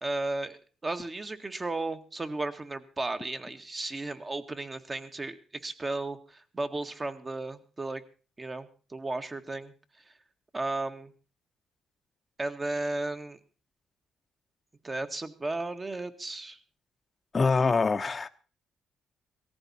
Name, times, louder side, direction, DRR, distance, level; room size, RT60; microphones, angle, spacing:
voice 1, 0.0-8.0 8.4-9.7 10.5-11.1 12.4-13.4 14.8-16.6, right 2 dB, 25° right, 1.7 m, -34 dB
voice 2, 17.3-18.3, left 4 dB, 30° left, 0.8 m, -24 dB
18.0 x 14.5 x 4.2 m
cardioid pair, 90°, 0 cm